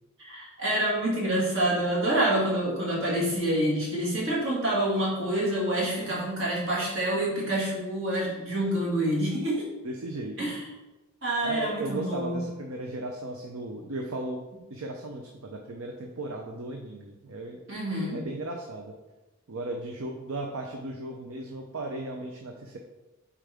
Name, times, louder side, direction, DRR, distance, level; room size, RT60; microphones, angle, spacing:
voice 1, 0.2-9.7 10.4-10.6 11.2-12.4 17.7-18.2, right 1 dB, 60° right, -5 dB, 2.2 m, -27 dB
voice 2, 9.1-9.4 9.8-10.4 11.4-14.4 14.7-17.6 18.1-19.0 19.5-22.8, right 2 dB, 75° right, 2 dB, 0.6 m, -36 dB
6.9 x 4.7 x 3.5 m, 1.1 s
head